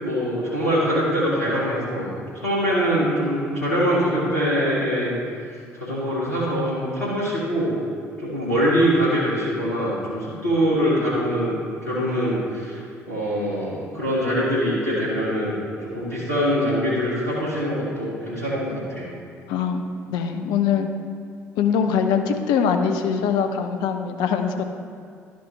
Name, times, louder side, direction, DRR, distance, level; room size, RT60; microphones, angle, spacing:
voice 1, 0.0-2.1 2.3-5.1 5.7-7.7 8.2-11.5 11.8-12.8 13.1-15.6 15.8-19.1, equal, 90° left, -9 dB, 1.5 m, -23 dB
voice 2, 19.5-19.8 20.1-20.9 21.6-24.6, left 7 dB, 60° left, 6 dB, 0.6 m, -22 dB
12.0 x 5.1 x 3.3 m, 2.3 s
figure-of-eight pair, 50°, 8 cm